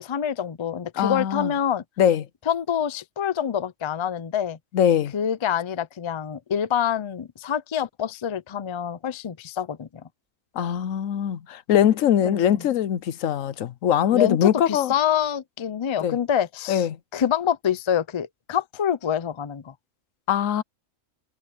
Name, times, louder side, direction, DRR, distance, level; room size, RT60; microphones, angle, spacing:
voice 1, 0.0-1.8 2.5-4.6 5.1-9.9 12.2-12.7 14.1-16.9 17.1-19.7, left 9 dB, 40° left, 0.4 m, -26 dB
voice 2, 1.0-1.5 2.0-2.2 4.7-5.1 10.6-14.9 16.0-16.2 16.7-17.0 20.3-20.6, left 10 dB, 90° left, 1.1 m, -22 dB
omnidirectional pair, 1.3 m